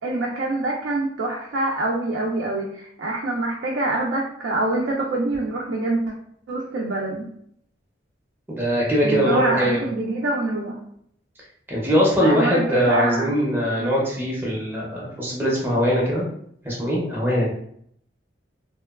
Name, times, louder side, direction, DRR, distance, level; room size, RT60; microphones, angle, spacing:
voice 1, 0.0-6.0 6.5-7.3 9.0-10.8 12.2-13.3 13.8-13.9, right 2 dB, 75° right, -2 dB, 0.4 m, -25 dB
voice 2, 8.5-9.8 11.7-16.3 16.6-17.5, equal, 10° right, -5 dB, 0.5 m, -21 dB
2.9 x 2.2 x 2.2 m, 0.69 s
head